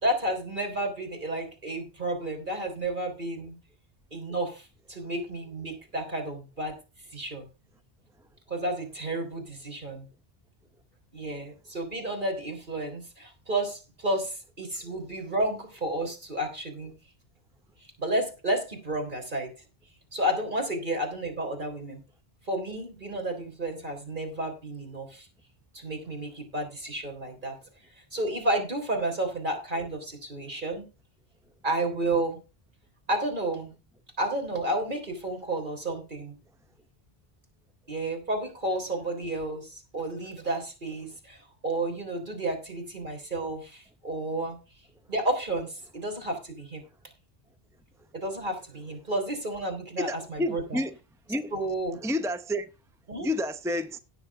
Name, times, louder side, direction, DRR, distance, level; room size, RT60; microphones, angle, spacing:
voice 1, 0.0-3.6 4.1-6.8 7.1-7.5 8.5-10.1 11.1-16.9 18.0-19.5 20.1-22.0 22.5-25.3 25.7-27.6 28.1-30.9 31.6-32.4 33.1-33.8 34.2-36.4 37.9-44.6 45.1-46.8 48.1-50.8 51.5-52.0 53.1-53.3, right 1 dB, 50° right, 3.7 m, -31 dB
voice 2, 50.0-50.9 51.3-51.5 52.0-52.7 53.2-54.0, left 1 dB, 5° right, 0.6 m, -29 dB
17.0 x 7.0 x 3.6 m
omnidirectional pair, 1.0 m